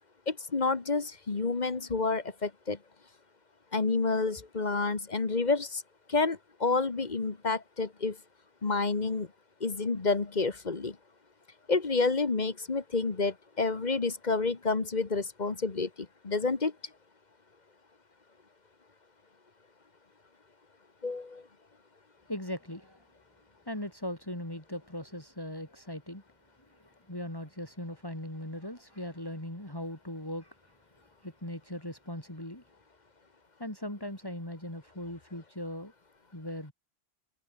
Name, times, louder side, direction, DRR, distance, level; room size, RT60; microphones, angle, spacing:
voice 1, 0.3-2.8 3.7-5.8 6.1-8.2 8.6-9.3 9.6-11.0 11.7-15.9 16.2-16.7 21.0-21.4, left 4 dB, 45° left, 1.5 m, -29 dB
voice 2, 22.3-23.0 23.6-26.2 26.8-30.7 31.0-32.6 33.6-35.9 36.3-36.7, left 1 dB, 20° left, 5.2 m, -39 dB
omnidirectional pair, 1.1 m